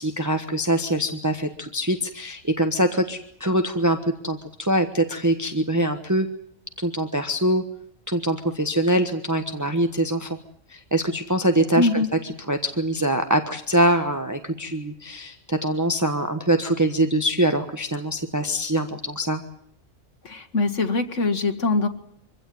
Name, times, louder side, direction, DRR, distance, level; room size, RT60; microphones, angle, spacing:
voice 1, 0.0-6.3 6.8-7.6 8.1-10.4 10.7-19.4, right 1 dB, 15° right, 6 dB, 1.3 m, -23 dB
voice 2, 11.8-12.1 20.2-21.9, left 3 dB, 70° left, 7 dB, 2.2 m, -22 dB
25.0 x 16.5 x 9.4 m, 0.69 s
omnidirectional pair, 1.3 m